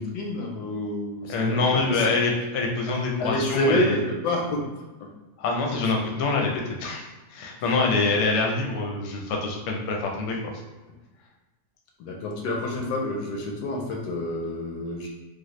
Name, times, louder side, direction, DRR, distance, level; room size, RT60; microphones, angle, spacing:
voice 1, 0.0-2.2 3.2-4.6 5.0-5.1 12.0-15.1, left 1 dB, 85° left, 1 dB, 1.1 m, -28 dB
voice 2, 1.3-4.0 5.4-10.4, left 3 dB, 60° left, 0 dB, 0.8 m, -25 dB
3.4 x 2.1 x 3.1 m, 1.2 s
omnidirectional pair, 1.7 m